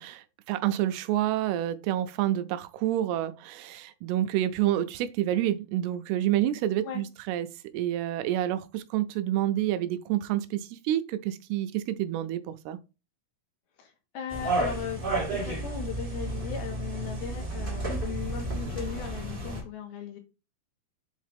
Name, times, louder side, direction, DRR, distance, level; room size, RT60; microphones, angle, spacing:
voice 1, 0.0-7.5 7.7-12.8, right 13 dB, 90° right, 2.7 m, -28 dB
voice 2, 13.8-15.0 15.3-20.2, left 7 dB, 75° left, 3.4 m, -37 dB
sound 1, 14.3-19.6, right 2 dB, 45° right, 0.7 m, -32 dB
7.7 x 3.7 x 3.5 m
omnidirectional pair, 4.5 m